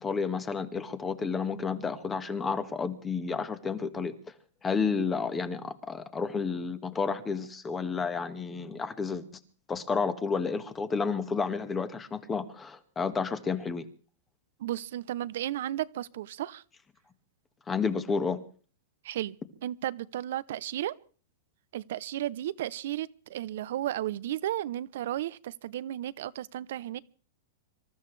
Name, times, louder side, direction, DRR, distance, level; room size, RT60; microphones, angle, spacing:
voice 1, 0.0-4.3 4.6-9.2 9.7-13.9 17.7-18.4, left 5 dB, 15° left, 1.5 m, -31 dB
voice 2, 14.6-16.6 19.0-19.4 19.6-20.9 21.7-27.0, right 13 dB, 65° right, 0.7 m, -34 dB
26.0 x 14.0 x 3.3 m
hypercardioid pair, 145°, 0 cm